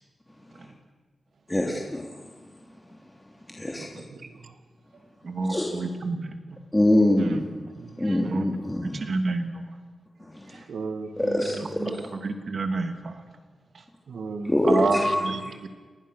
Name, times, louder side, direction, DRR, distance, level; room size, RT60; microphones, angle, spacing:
voice 1, 1.5-4.0 5.5-5.7 6.7-7.5 7.8-9.0 10.2-10.6 11.2-12.1 14.4-15.5, left 1 dB, 15° left, 3.2 m, -26 dB
voice 2, 3.8-4.4 7.8-8.2 10.5-12.0 14.1-14.5 15.0-15.4, right 4 dB, 85° right, 1.9 m, -37 dB
voice 3, 5.2-6.3 8.3-8.5 8.9-9.6 11.8-11.9 12.2-13.2 14.7-15.7, right 3 dB, 60° right, 2.7 m, -28 dB
29.0 x 20.5 x 6.7 m
wide cardioid pair, 85°, 0 cm